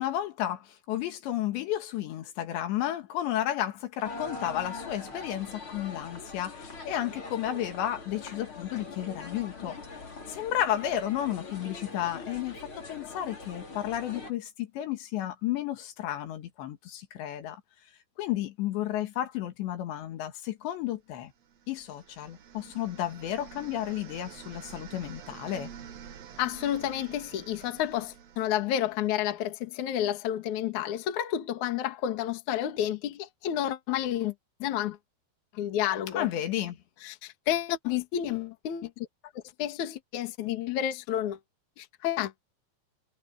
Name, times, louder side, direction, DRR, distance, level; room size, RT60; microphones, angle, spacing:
voice 1, 0.0-9.8 10.3-17.6 18.2-21.3 21.7-25.7 36.2-36.8, left 12 dB, 75° left, 3.9 m, -32 dB
sound 1, 4.0-14.3, left 3 dB, 30° left, 5.2 m, -42 dB
sound 2, 21.4-29.4, right 8 dB, 75° right, 1.5 m, -48 dB
voice 2, 26.4-34.3 34.6-35.0 35.5-36.3 37.0-39.1 39.3-41.4 41.8-42.3, left 11 dB, 50° left, 2.7 m, -30 dB
omnidirectional pair, 5.2 m